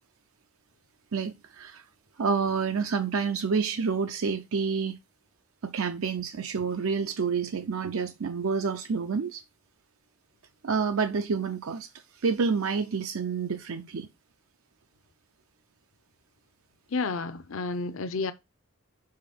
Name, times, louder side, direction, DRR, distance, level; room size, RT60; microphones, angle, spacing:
voice 1, 1.1-1.8 2.2-5.0 5.6-9.4 10.6-11.9 12.1-14.1, right 5 dB, 70° right, 0.5 m, -28 dB
voice 2, 16.9-18.3, left 3 dB, 65° left, 0.6 m, -30 dB
5.8 x 4.9 x 5.0 m
head